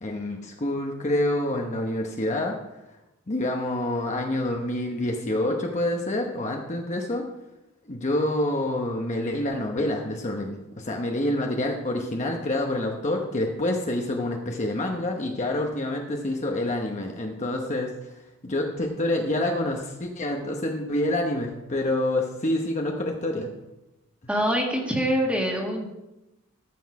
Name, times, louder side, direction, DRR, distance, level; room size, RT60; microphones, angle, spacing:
voice 1, 0.0-2.5 3.3-7.2 7.9-18.1 18.4-23.5, left 1 dB, 35° left, 1 dB, 0.9 m, -27 dB
voice 2, 24.3-25.9, equal, 5° right, 0 dB, 1.8 m, -24 dB
14.0 x 6.3 x 4.8 m, 0.95 s
head